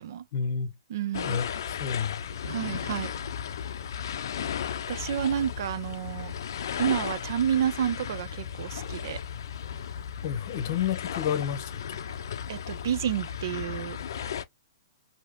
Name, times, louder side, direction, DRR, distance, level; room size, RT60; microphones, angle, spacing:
voice 1, 0.3-0.7 1.2-2.2 10.2-12.0, left 8 dB, 45° left, 0.8 m, -30 dB
voice 2, 0.9-1.4 2.4-3.1 4.9-6.3 6.8-9.2 12.5-14.0, right 9 dB, 60° right, 0.4 m, -30 dB
sound 1, 1.1-14.4, left 8 dB, 75° left, 0.4 m, -35 dB
3.1 x 2.8 x 2.5 m
hypercardioid pair, 165°, 2 cm